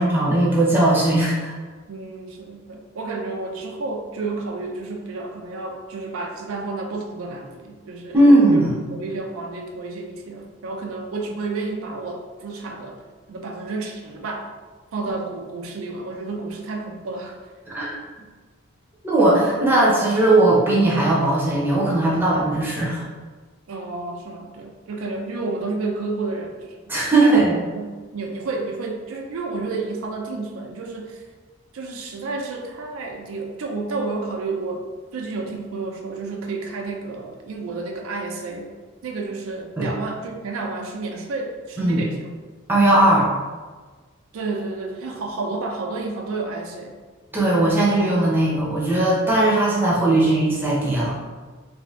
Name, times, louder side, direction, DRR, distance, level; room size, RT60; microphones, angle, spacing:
voice 1, 0.0-1.5 8.1-8.7 17.7-18.0 19.0-23.0 26.9-27.6 39.8-39.9 41.8-42.0 42.7-43.3 47.3-51.1, right 1 dB, 10° right, -6 dB, 0.7 m, -18 dB
voice 2, 1.9-8.2 8.5-8.6 8.9-13.0 13.3-14.5 14.9-17.4 23.7-26.8 27.2-31.2 31.7-34.9 35.1-38.7 39.0-42.3 44.3-46.9, right 3 dB, 80° right, 2 dB, 0.4 m, -30 dB
2.6 x 2.6 x 3.2 m, 1.4 s
head